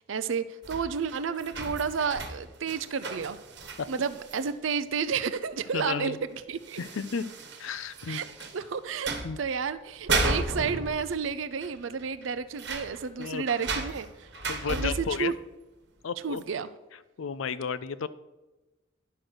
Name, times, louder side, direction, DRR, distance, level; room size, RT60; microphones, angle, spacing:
voice 1, 0.1-3.4 3.9-6.8 8.1-8.3 8.5-14.1 14.7-15.3 16.2-16.7, right 6 dB, 75° right, 13 dB, 0.5 m, -31 dB
sound 1, 0.6-4.5 5.6-5.7 6.0-6.1 6.6-8.7 9.0-9.5 9.9-11.3 11.6-11.7 12.0-15.2 16.4-16.5, right 3 dB, 60° right, 1.3 m, -34 dB
voice 2, 5.7-6.2 6.8-7.2 7.6-8.5 9.2-9.4 13.2-13.5 14.5-15.3 16.0-16.4 17.2-18.1, left 6 dB, 80° left, 14 dB, 0.5 m, -33 dB
10.5 x 6.5 x 6.1 m, 1.1 s
head